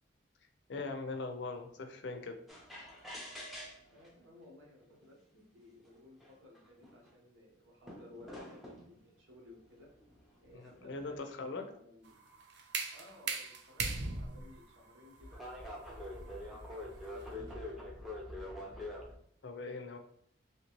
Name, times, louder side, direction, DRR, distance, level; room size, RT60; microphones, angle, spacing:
voice 1, 0.7-2.4 10.5-11.7 19.4-20.0, left 3 dB, 60° left, 6 dB, 0.5 m, -41 dB
sound 1, 2.5-4.1 5.0-5.1 5.9-6.0 6.2-7.1 7.9-8.9 9.9-11.4 14.0-14.2 15.2-19.1, left 1 dB, ahead, 0.5 m, -45 dB
voice 2, 3.9-9.9 10.4-12.2 12.9-15.4 15.9-18.8, left 2 dB, 85° right, -1 dB, 1.0 m, -58 dB
sound 2, 12.0-17.8, right 4 dB, 60° right, 0.5 m, -41 dB
3.0 x 2.9 x 2.9 m, 0.66 s
head